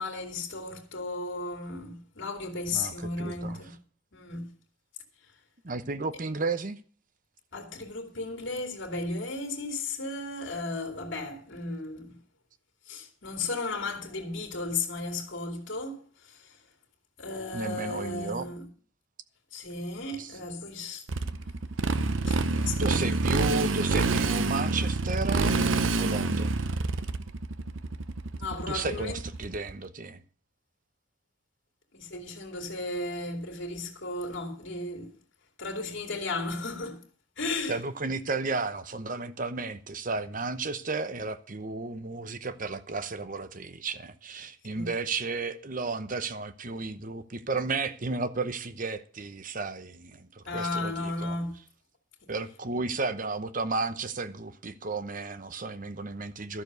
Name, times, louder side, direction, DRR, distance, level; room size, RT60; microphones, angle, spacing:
voice 1, 0.0-3.8 4.1-4.5 7.5-12.2 12.9-16.0 16.2-16.6 17.2-18.7 19.5-21.0 21.9-23.2 28.3-29.2 31.9-35.1 35.6-37.0 37.4-37.8 44.7-44.9 50.4-51.5, left 3 dB, 60° left, 2.6 m, -35 dB
voice 2, 2.7-3.6 5.6-6.8 17.5-18.5 20.2-20.3 22.8-25.6 26.0-26.6 28.7-30.2 37.7-51.4 52.3-56.6, right 3 dB, 40° right, 0.9 m, -33 dB
Motorcycle, 21.1-29.7, right 3 dB, 70° right, 0.7 m, -27 dB
13.0 x 6.9 x 8.0 m
head